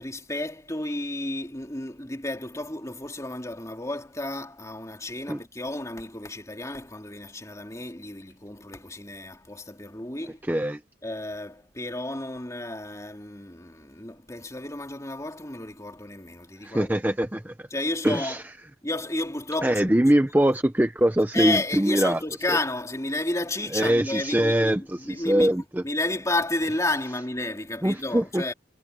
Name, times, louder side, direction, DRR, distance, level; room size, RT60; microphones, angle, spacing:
voice 1, 0.0-10.4 11.0-16.9 17.7-18.4 18.8-19.9 21.3-25.5 25.8-28.5, left 2 dB, 15° left, 3.3 m, -31 dB
voice 2, 10.5-10.8 16.6-17.7 18.0-18.4 19.6-22.2 23.7-25.8 27.8-28.4, right 1 dB, 10° right, 0.6 m, -23 dB
head